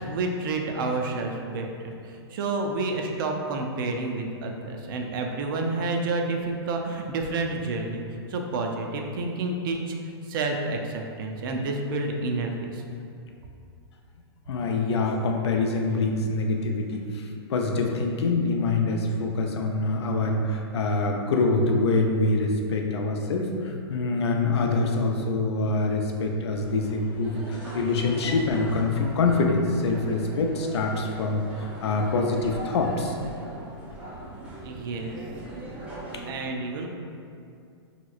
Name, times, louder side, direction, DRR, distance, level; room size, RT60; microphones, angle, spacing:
voice 1, 0.0-8.0 8.3-9.9 10.3-12.8 34.6-35.2 36.2-36.9, right 3 dB, 50° right, 2 dB, 0.4 m, -29 dB
voice 2, 14.5-33.1 36.1-36.2, left 3 dB, 80° left, 2 dB, 0.4 m, -25 dB
sound 1, 26.5-36.3, right 1 dB, 10° right, 0.6 m, -40 dB
3.0 x 2.9 x 2.4 m, 2.4 s
hypercardioid pair, 145°, 14 cm